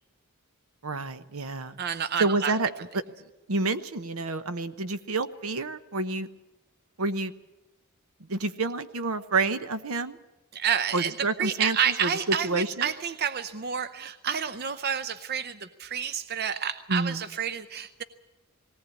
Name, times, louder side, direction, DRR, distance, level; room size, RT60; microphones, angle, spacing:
voice 1, 0.8-1.8 2.2-3.0 3.5-6.3 7.0-7.3 8.3-10.2 10.9-12.9 16.9-17.2, right 3 dB, 70° right, 11 dB, 1.0 m, -29 dB
voice 2, 1.8-2.6 10.5-18.0, right 8 dB, 45° right, 11 dB, 0.7 m, -29 dB
19.0 x 18.5 x 8.5 m, 0.99 s
head